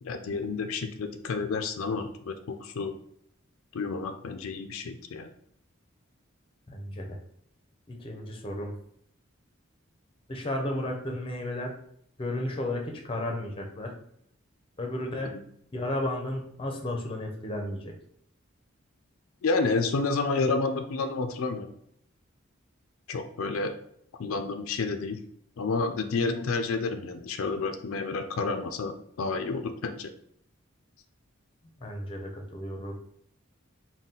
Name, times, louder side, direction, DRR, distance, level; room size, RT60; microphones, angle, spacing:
voice 1, 0.0-2.9 3.7-5.3 15.3-15.4 19.4-21.7 23.1-23.7 24.2-25.2 25.6-30.1, left 4 dB, 85° left, 7 dB, 0.4 m, -30 dB
voice 2, 6.7-7.2 7.9-8.7 10.3-11.8 12.2-13.9 14.8-15.5 15.7-17.9 31.8-33.0, left 1 dB, 25° left, 2 dB, 0.6 m, -33 dB
4.0 x 2.2 x 3.7 m, 0.70 s
head